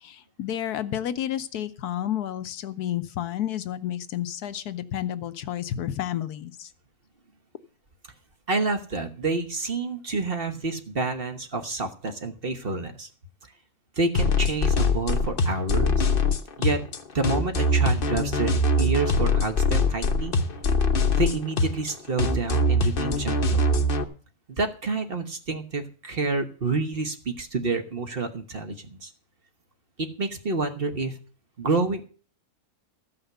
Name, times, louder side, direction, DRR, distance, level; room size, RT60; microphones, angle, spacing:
voice 1, 0.0-6.7, left 11 dB, 75° left, 11 dB, 1.3 m, -31 dB
voice 2, 8.5-13.1 14.0-16.1 16.6-16.8 17.1-18.5 18.8-20.3 21.1-23.6 24.5-29.1 30.0-31.2 31.6-32.1, right 3 dB, 40° right, 6 dB, 1.3 m, -28 dB
sound 1, 14.1-24.0, left 2 dB, 40° left, 1.0 m, -23 dB
14.5 x 5.8 x 8.0 m, 0.40 s
omnidirectional pair, 1.7 m